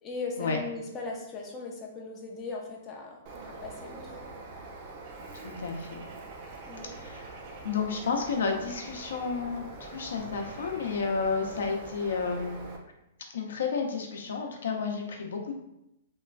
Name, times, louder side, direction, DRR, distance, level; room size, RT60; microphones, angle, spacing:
voice 1, 0.0-4.2 6.7-6.9, left 3 dB, 20° left, -1 dB, 0.4 m, -38 dB
Bird, 3.3-12.8, right 3 dB, 40° right, 0.4 m, -44 dB
voice 2, 5.4-6.0 6.9-7.4 7.6-12.6 13.3-15.5, left 5 dB, 80° left, 2 dB, 0.5 m, -31 dB
2.9 x 2.3 x 2.4 m, 0.85 s
hypercardioid pair, 150°, 0 cm